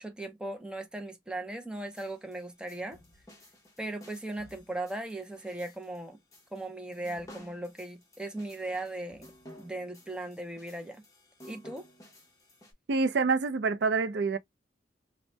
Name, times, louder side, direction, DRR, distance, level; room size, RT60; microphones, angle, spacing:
voice 1, 0.0-3.0 3.8-6.2 6.5-9.3 9.6-11.0 11.4-11.9, right 2 dB, 5° right, 0.5 m, -38 dB
sound 1, 1.8-12.7, equal, 20° left, 0.9 m, -54 dB
voice 2, 12.9-14.4, right 4 dB, 65° right, 0.4 m, -26 dB
2.6 x 2.1 x 3.1 m
head